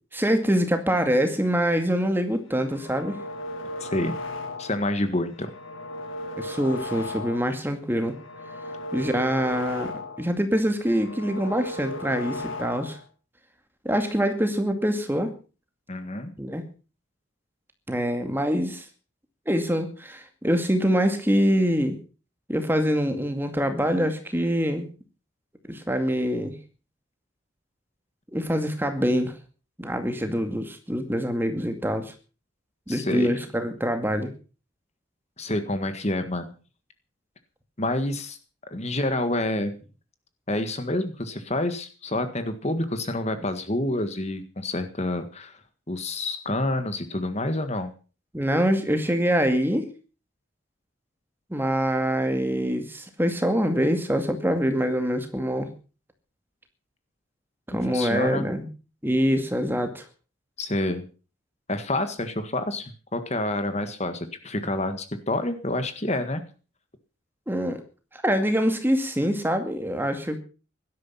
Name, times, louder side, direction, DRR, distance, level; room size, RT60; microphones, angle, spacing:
voice 1, 0.1-3.2 6.4-8.2 8.9-13.0 13.8-15.3 16.4-16.6 17.9-18.9 19.5-22.0 22.5-24.9 25.7-26.5 28.3-29.3 29.8-32.1 32.9-34.3 48.3-49.9 51.5-55.7 57.7-58.7 59.0-60.0 67.5-67.8 68.1-70.4, equal, 10° right, 7 dB, 2.2 m, -25 dB
sound 1, 2.5-4.9 5.3-7.6 8.0-10.3 10.7-13.1, left 2 dB, 75° left, 3.0 m, -36 dB
voice 2, 3.8-4.1 4.6-5.5 15.9-16.3 32.9-33.3 35.4-36.5 37.8-38.4 38.7-39.8 40.5-45.6 45.9-47.9 57.9-58.4 60.6-61.0 61.7-66.4, left 1 dB, 30° left, 9 dB, 1.7 m, -28 dB
17.0 x 12.5 x 5.8 m, 0.37 s
head